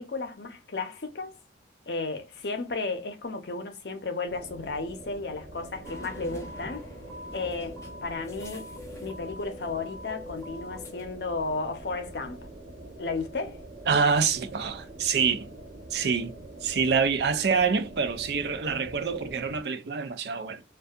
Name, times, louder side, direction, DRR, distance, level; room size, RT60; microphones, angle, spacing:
voice 1, 0.0-1.4 1.9-6.9 7.3-8.7 9.0-12.5 13.0-13.6, left 3 dB, 65° left, 0.7 m, -34 dB
sound 1, 4.3-19.6, right 1 dB, 50° right, 0.8 m, -45 dB
sound 2, 5.8-11.0, left 1 dB, 15° left, 0.7 m, -43 dB
voice 2, 13.9-15.5 15.9-20.6, right 5 dB, 65° right, 0.4 m, -26 dB
2.6 x 2.3 x 2.3 m
head